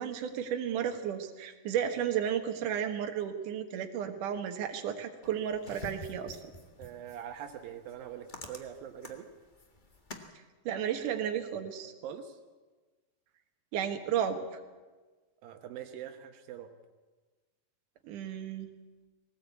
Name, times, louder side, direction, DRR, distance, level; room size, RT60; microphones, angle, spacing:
voice 1, 0.0-6.4 10.7-11.9 13.7-14.4 18.0-18.7, right 9 dB, 70° right, 5 dB, 2.9 m, -33 dB
sound 1, 5.2-10.3, left 1 dB, 70° left, 0.4 m, -48 dB
voice 2, 6.8-9.3 12.0-12.4 15.4-16.7, right 9 dB, 85° right, 6 dB, 2.9 m, -43 dB
20.5 x 18.5 x 8.6 m, 1.3 s
omnidirectional pair, 4.0 m